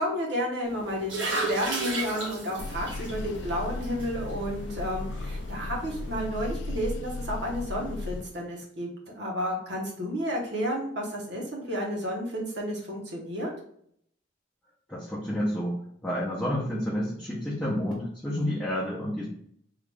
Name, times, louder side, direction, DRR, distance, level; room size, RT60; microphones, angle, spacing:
voice 1, 0.0-13.5, equal, 60° right, -1 dB, 1.1 m, -31 dB
sound 1, 0.7-6.3, right 2 dB, 85° right, 1.3 m, -35 dB
sound 2, 2.6-8.2, left 2 dB, 65° left, 0.3 m, -36 dB
voice 2, 14.9-15.8 16.0-19.3, equal, 5° left, -7 dB, 0.7 m, -29 dB
3.8 x 2.5 x 3.4 m, 0.67 s
head